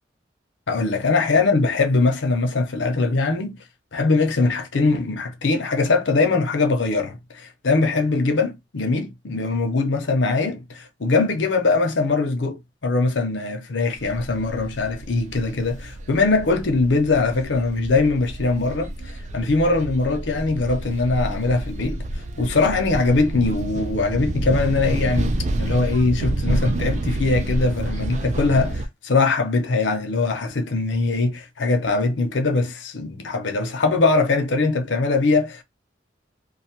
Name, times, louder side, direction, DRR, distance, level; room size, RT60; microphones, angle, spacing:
voice 1, 0.7-3.6 3.9-22.1 22.4-35.6, left 3 dB, 80° left, 0.7 m, -21 dB
sound 1, 14.0-28.9, right 1 dB, 40° right, 0.4 m, -29 dB
2.5 x 2.3 x 2.8 m
head